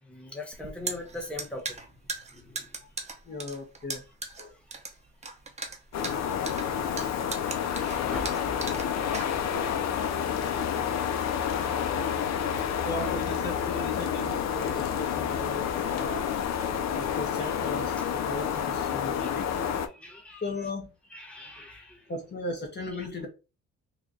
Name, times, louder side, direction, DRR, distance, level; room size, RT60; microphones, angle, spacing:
voice 1, 0.0-2.8 3.3-3.4 4.5-4.6 6.2-11.3 11.5-13.2 16.4-16.9 17.4-17.5 17.9-18.0 19.1-19.4 19.8-20.7 21.1-22.2 22.9-23.1, left 2 dB, 5° left, 1.2 m, -45 dB
sound 1, 0.5-9.7, right 3 dB, 20° right, 0.7 m, -38 dB
voice 2, 3.3-4.0 4.4-4.5 12.8-16.4 16.9-17.9 18.2-19.5 20.4-20.9 22.1-23.3, left 2 dB, 35° left, 1.1 m, -36 dB
sound 2, 5.9-19.9, left 8 dB, 60° left, 0.6 m, -29 dB
3.2 x 2.4 x 3.9 m
cardioid pair, 90°, 30 cm